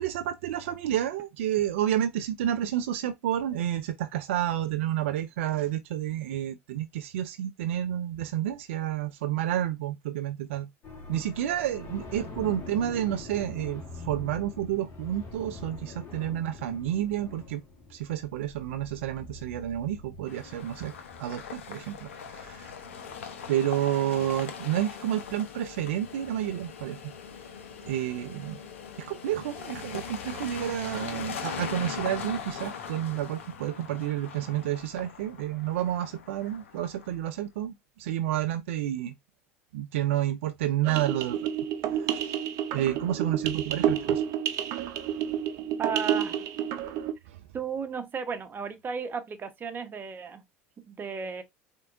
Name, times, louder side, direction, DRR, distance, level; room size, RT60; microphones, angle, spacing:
voice 1, 0.0-10.7 11.1-17.6 17.9-20.9 21.2-22.7 23.5-27.1 27.9-28.6 29.0-37.7 38.0-39.1 39.7-41.4 42.1-42.2 42.7-44.2 47.3-47.4, right 11 dB, 75° right, 0.4 m, -30 dB
sound 1, 10.8-23.3, left 3 dB, 45° left, 2.4 m, -45 dB
sound 2, 20.3-37.2, left 7 dB, 80° left, 0.9 m, -40 dB
sound 3, 40.8-47.1, right 9 dB, 55° right, 0.8 m, -29 dB
voice 2, 45.8-46.4 47.5-50.4 50.9-51.4, right 6 dB, 30° right, 1.0 m, -34 dB
4.2 x 3.6 x 2.5 m
hypercardioid pair, 80°, 7 cm